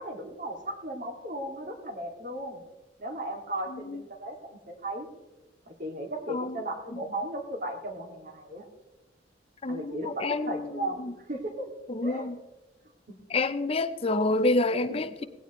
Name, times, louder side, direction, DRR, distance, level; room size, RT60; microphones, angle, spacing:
voice 1, 0.0-2.6 3.0-5.1 5.7-8.7 9.7-11.7 12.0-12.3 13.1-13.2 14.9-15.3, right 1 dB, 50° right, 2.2 m, -36 dB
voice 2, 9.6-11.1 11.9-12.4 13.3-15.3, left 2 dB, 30° left, 0.5 m, -28 dB
18.0 x 16.0 x 3.1 m
head